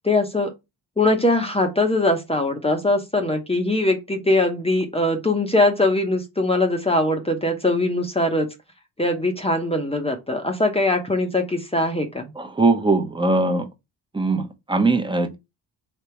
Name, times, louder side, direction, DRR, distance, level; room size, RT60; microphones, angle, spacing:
voice 1, 0.0-0.5 1.0-8.5 9.0-12.3, left 2 dB, 15° left, 0.8 m, -21 dB
voice 2, 12.4-13.7 14.1-15.4, right 3 dB, 10° right, 0.9 m, -21 dB
3.4 x 2.9 x 4.4 m
cardioid pair, 85°, 41 cm